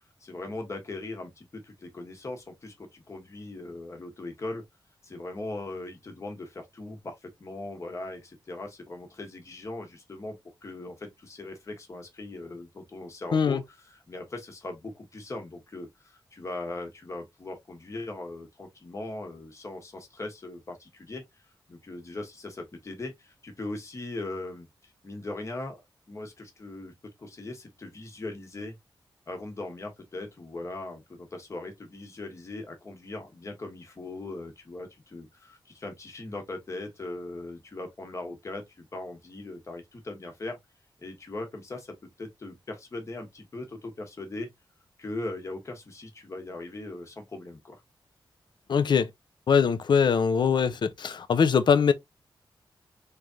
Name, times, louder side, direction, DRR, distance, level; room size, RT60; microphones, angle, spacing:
voice 1, 0.2-4.6 5.0-10.4 10.6-21.2 21.7-25.8 26.1-28.7 29.3-40.6 41.0-44.5 45.0-47.8, left 2 dB, 35° left, 1.1 m, -39 dB
voice 2, 48.7-49.1 49.5-51.9, left 6 dB, 55° left, 0.5 m, -22 dB
3.6 x 3.2 x 2.6 m
wide cardioid pair, 165°, 9 cm